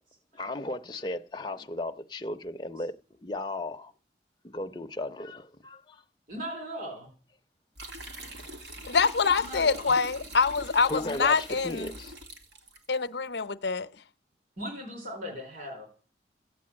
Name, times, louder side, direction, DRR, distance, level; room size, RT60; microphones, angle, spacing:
voice 1, 0.3-3.9 4.4-6.0 8.8-8.9 10.8-12.1, left 2 dB, 25° left, 0.7 m, -36 dB
voice 2, 6.3-7.1 9.4-9.9 14.6-15.9, equal, 50° right, 4.3 m, -38 dB
sound 1, 7.8-13.0, right 1 dB, 75° right, 2.7 m, -43 dB
voice 3, 8.8-11.9 12.9-13.9, left 5 dB, 75° left, 0.8 m, -25 dB
15.0 x 8.4 x 8.8 m
head